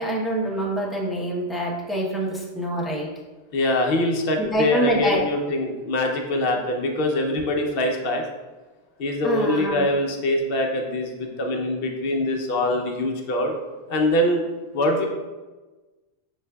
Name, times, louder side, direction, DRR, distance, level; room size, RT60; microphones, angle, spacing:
voice 1, 0.0-3.1 4.4-5.2 9.2-9.9, right 1 dB, ahead, -4 dB, 0.5 m, -25 dB
voice 2, 3.5-8.2 9.0-13.5 13.9-14.4 14.7-15.1, left 1 dB, 60° left, 2 dB, 0.8 m, -23 dB
6.2 x 3.3 x 2.2 m, 1.2 s
omnidirectional pair, 1.1 m